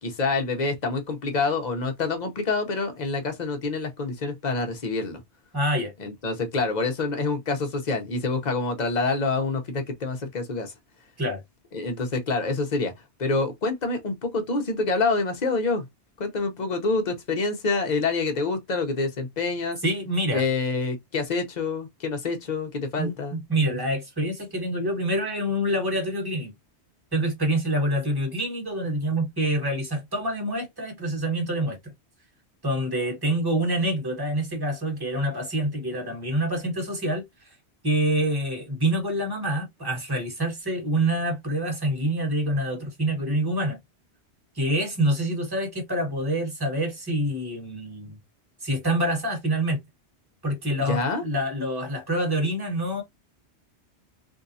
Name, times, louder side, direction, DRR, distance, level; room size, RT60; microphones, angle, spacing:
voice 1, 0.0-5.2 6.0-10.7 11.7-12.9 13.2-15.9 16.2-19.8 20.3-23.4 50.9-51.2, left 3 dB, 45° left, 0.8 m, -27 dB
voice 2, 5.5-5.9 11.2-11.4 19.8-20.4 23.0-26.5 27.1-31.8 32.6-37.5 37.8-43.8 44.5-48.2 48.6-49.8 50.4-53.0, right 1 dB, 20° right, 1.4 m, -26 dB
3.6 x 2.7 x 2.6 m
omnidirectional pair, 1.1 m